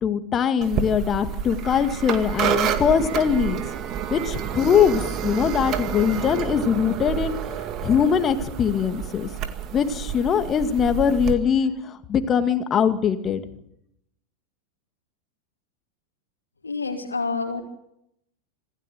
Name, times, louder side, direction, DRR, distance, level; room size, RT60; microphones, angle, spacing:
voice 1, 0.0-3.6 4.1-9.3 9.7-13.4, left 7 dB, 25° left, 9 dB, 2.1 m, -22 dB
sound 1, 0.6-11.3, right 9 dB, 35° right, 2.1 m, -29 dB
voice 2, 16.6-17.6, left 4 dB, 75° left, 1 dB, 2.8 m, -28 dB
26.5 x 15.5 x 7.8 m, 0.78 s
figure-of-eight pair, 90°, 0 cm